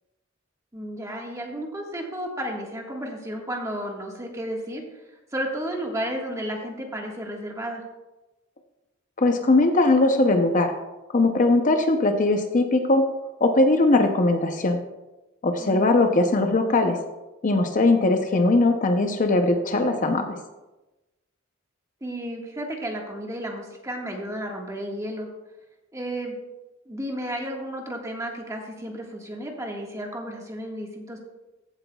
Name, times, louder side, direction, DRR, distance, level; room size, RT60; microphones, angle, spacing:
voice 1, 0.7-4.8 5.3-7.8 15.6-16.0 22.0-25.3 25.9-26.4 26.8-31.2, right 1 dB, 15° right, 0 dB, 1.6 m, -32 dB
voice 2, 9.2-10.7 11.1-13.1 13.4-14.8 15.4-17.0 17.4-20.4, left 2 dB, 40° left, 6 dB, 0.6 m, -20 dB
15.0 x 8.2 x 2.3 m, 1.0 s
head